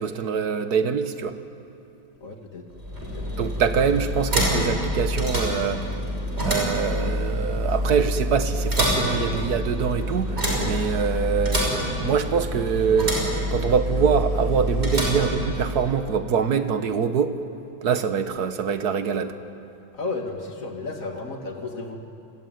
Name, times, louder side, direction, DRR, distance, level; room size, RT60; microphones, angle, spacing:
voice 1, 0.0-1.4 3.4-5.8 6.4-11.6 12.0-17.3 17.8-19.3, right 6 dB, 55° right, 10 dB, 1.6 m, -24 dB
voice 2, 2.2-2.7 3.0-3.2 19.9-22.0, left 3 dB, 45° left, 3 dB, 2.8 m, -33 dB
sound 1, 2.7-16.0, equal, 30° right, 6.0 m, -26 dB
28.5 x 21.0 x 9.4 m, 2.9 s
omnidirectional pair, 2.0 m